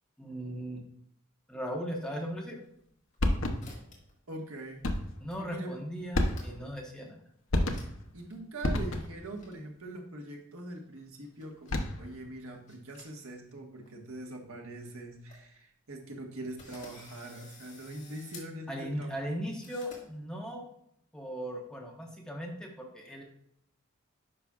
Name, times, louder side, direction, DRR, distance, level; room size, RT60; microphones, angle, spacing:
voice 1, 0.2-0.8 1.5-2.6 5.2-7.2 18.7-20.7 21.1-23.2, equal, 5° left, 0 dB, 0.9 m, -38 dB
sound 1, 2.7-3.3 3.6-4.1 4.4-4.9 5.3-5.4 5.7-6.7 7.1-7.2 7.7-7.9 8.2-8.3 8.9-9.5 10.8-11.8 12.4-13.5 13.8-13.9 14.5-14.6 14.8-14.9 15.1-15.4 15.9-16.0 16.6-18.5 19.6-20.0, left 3 dB, 35° left, 1.9 m, -53 dB
sound 2, 3.2-3.8 4.8-5.2 6.1-6.7 7.5-8.1 8.6-9.3 11.5-12.1, left 1 dB, 65° left, 0.8 m, -30 dB
voice 2, 4.3-4.8 5.4-5.7 8.1-19.1, right 1 dB, 75° right, 2 dB, 1.4 m, -43 dB
10.0 x 5.9 x 2.4 m, 0.73 s
head